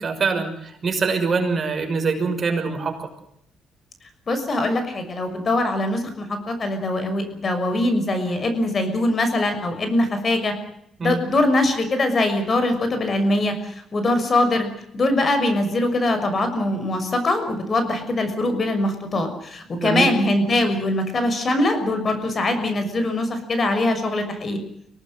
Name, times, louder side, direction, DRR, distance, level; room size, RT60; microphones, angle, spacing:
voice 1, 0.0-3.1 11.0-11.2 19.8-20.1, right 4 dB, 40° right, 4 dB, 6.2 m, -24 dB
voice 2, 4.3-10.5 11.0-14.7 14.9-24.6, left 2 dB, 40° left, 8 dB, 6.3 m, -22 dB
25.0 x 18.5 x 7.9 m, 0.74 s
cardioid pair, 90°, 0 cm